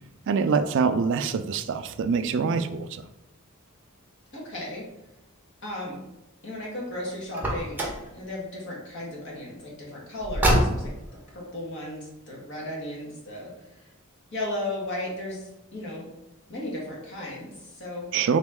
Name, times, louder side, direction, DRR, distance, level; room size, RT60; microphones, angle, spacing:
voice 1, 0.3-3.0 18.1-18.4, right 5 dB, 60° right, 10 dB, 0.3 m, -25 dB
voice 2, 4.3-4.9 5.6-6.0 6.4-10.9 11.3-13.9 14.3-16.1 16.5-18.1, left 1 dB, 60° left, -3 dB, 1.5 m, -35 dB
Car, 7.3-8.1 10.2-11.1, equal, 10° right, 0.8 m, -24 dB
4.1 x 3.0 x 3.5 m, 0.92 s
head